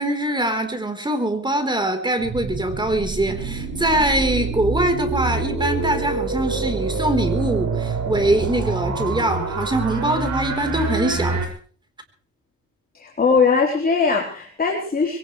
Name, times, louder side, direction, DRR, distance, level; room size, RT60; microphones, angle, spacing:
voice 1, 0.0-11.4, right 1 dB, 15° right, 8 dB, 4.2 m, -23 dB
sound 1, 2.2-11.5, right 4 dB, 65° right, 6.4 m, -26 dB
voice 2, 13.0-15.2, left 5 dB, 30° left, -1 dB, 4.1 m, -20 dB
22.5 x 18.0 x 3.4 m, 0.43 s
cardioid pair, 90°, 30 cm